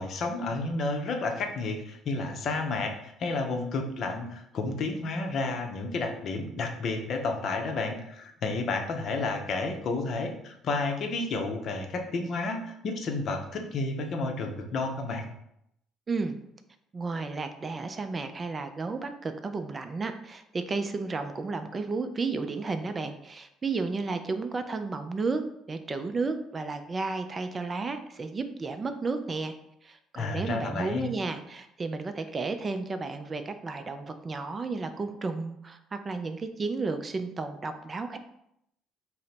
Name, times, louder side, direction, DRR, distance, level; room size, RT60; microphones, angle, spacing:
voice 1, 0.0-15.2 30.2-31.1, left 3 dB, 50° left, 4 dB, 0.6 m, -31 dB
voice 2, 16.9-29.5 29.8-38.2, right 3 dB, 30° right, 8 dB, 0.3 m, -33 dB
3.8 x 2.0 x 4.2 m, 0.77 s
figure-of-eight pair, 50°, 0 cm